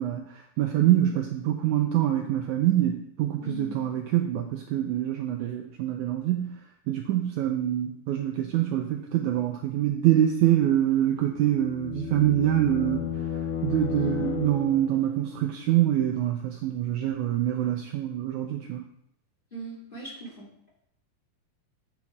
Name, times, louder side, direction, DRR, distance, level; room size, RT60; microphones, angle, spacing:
voice 1, 0.0-6.6 6.9-13.1 13.6-18.9, right 12 dB, 85° right, 3 dB, 1.7 m, -25 dB
voice 2, 3.4-3.9 13.9-14.1 19.5-20.5, equal, 15° left, -7 dB, 2.5 m, -39 dB
sound 1, 11.2-15.1, left 8 dB, 65° left, 2.0 m, -33 dB
8.7 x 5.7 x 4.7 m, 0.71 s
omnidirectional pair, 4.0 m